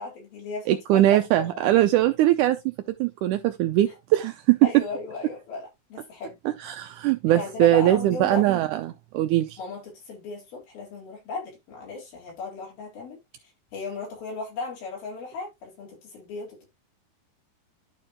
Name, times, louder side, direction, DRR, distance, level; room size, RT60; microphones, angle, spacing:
voice 1, 0.0-1.8 4.6-6.4 7.3-8.4 9.6-13.2 13.7-16.7, left 4 dB, 85° left, 5.9 m, -36 dB
voice 2, 0.7-2.8 3.0-4.8 6.5-9.6, right 14 dB, 80° right, 1.8 m, -21 dB
12.0 x 4.5 x 2.9 m
omnidirectional pair, 4.2 m